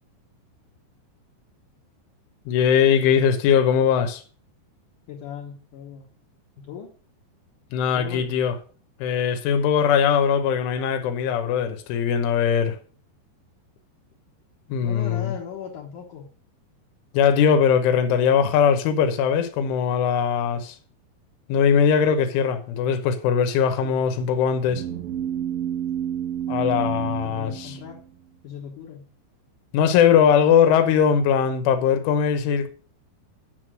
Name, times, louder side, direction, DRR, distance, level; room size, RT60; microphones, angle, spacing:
voice 1, 2.5-4.2 7.7-8.5 9.0-12.8 14.7-15.3 17.1-20.8 21.5-24.8 26.5-27.8 29.7-32.7, left 7 dB, 90° left, 3.5 m, -20 dB
voice 2, 5.1-6.1 6.6-6.9 7.9-8.4 14.8-16.3 23.8-24.0 26.6-28.0 28.4-29.1, left 8 dB, 60° left, 2.2 m, -38 dB
sound 1, 24.6-28.3, right 10 dB, 60° right, 1.5 m, -30 dB
10.5 x 6.1 x 6.2 m
omnidirectional pair, 5.4 m